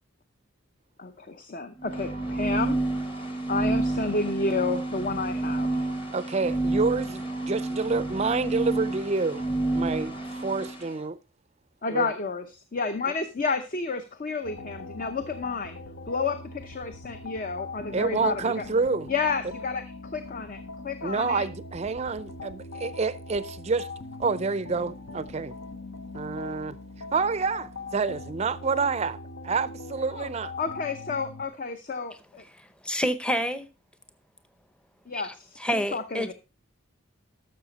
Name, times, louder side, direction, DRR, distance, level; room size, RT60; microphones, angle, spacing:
voice 1, 1.0-2.8 3.5-5.9 11.8-15.8 16.1-18.6 19.1-21.5 30.1-30.3 30.6-32.4 35.1-36.3, left 4 dB, 40° left, 0.7 m, -31 dB
sound 1, 1.8-10.9, right 2 dB, 25° left, 1.4 m, -29 dB
voice 2, 6.1-9.4 9.7-10.1 10.4-11.2 11.9-12.1 17.9-19.1 21.0-23.9 24.2-25.5 26.1-26.8 27.1-29.2 29.4-30.5, right 4 dB, 30° right, 0.4 m, -28 dB
sound 2, 14.4-31.5, left 3 dB, 70° left, 0.9 m, -41 dB
voice 3, 32.8-33.7 35.1-35.3 35.6-36.3, equal, 5° left, 0.7 m, -28 dB
12.5 x 6.7 x 4.0 m
head